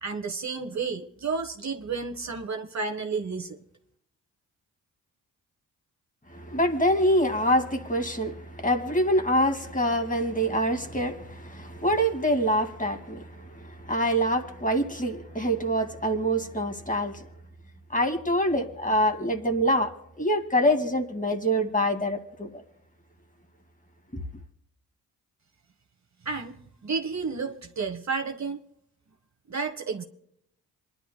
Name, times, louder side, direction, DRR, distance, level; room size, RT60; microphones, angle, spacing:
voice 1, 0.0-3.6 26.2-26.6 26.8-28.6 29.5-30.0, right 4 dB, 40° right, 1.4 m, -31 dB
voice 2, 6.3-17.2 17.9-19.9 20.2-22.6 24.1-24.2, equal, 20° left, 2.3 m, -25 dB
27.5 x 11.5 x 2.3 m
hypercardioid pair, 40°, 43 cm